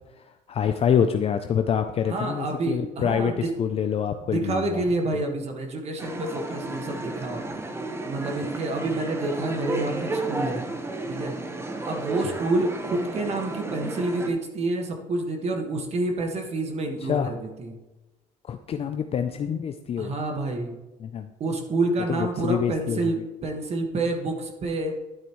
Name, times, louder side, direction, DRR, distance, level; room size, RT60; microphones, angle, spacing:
voice 1, 0.5-4.8 12.2-12.4 17.1-17.3 18.5-20.3 21.0-21.3 22.1-23.1, left 8 dB, 40° left, 8 dB, 0.5 m, -26 dB
voice 2, 2.1-3.5 4.2-7.4 8.0-10.6 11.1-11.3 11.9-17.8 20.0-20.8 21.4-24.9, right 2 dB, 45° right, 3 dB, 1.7 m, -28 dB
sound 1, 6.0-14.3, right 2 dB, 15° right, 1.2 m, -33 dB
11.5 x 8.9 x 3.1 m, 1.1 s
cardioid pair, 105°, 15 cm